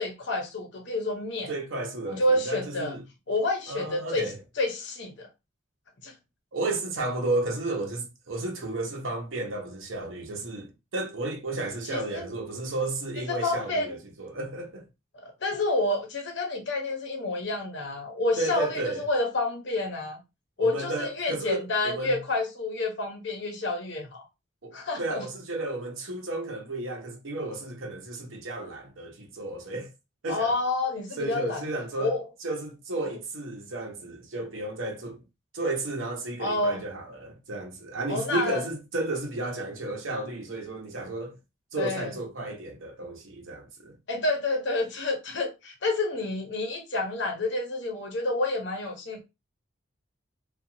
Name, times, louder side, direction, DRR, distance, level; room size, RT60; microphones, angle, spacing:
voice 1, 0.0-1.5 2.1-2.9 3.3-4.3 4.6-5.3 6.0-6.1 11.9-12.2 13.3-14.0 15.2-20.2 20.6-24.2 24.7-25.2 30.3-31.6 32.0-32.2 36.4-36.8 38.1-38.6 41.8-42.1 44.1-49.2, left 2 dB, 60° left, 0.8 m, -29 dB
voice 2, 1.5-3.0 3.7-4.4 6.5-14.9 18.4-19.0 20.6-22.2 24.6-29.9 30.2-30.6 31.2-35.2 35.5-41.4 41.7-43.9, right 2 dB, 75° right, 0.8 m, -33 dB
2.8 x 2.3 x 2.6 m
head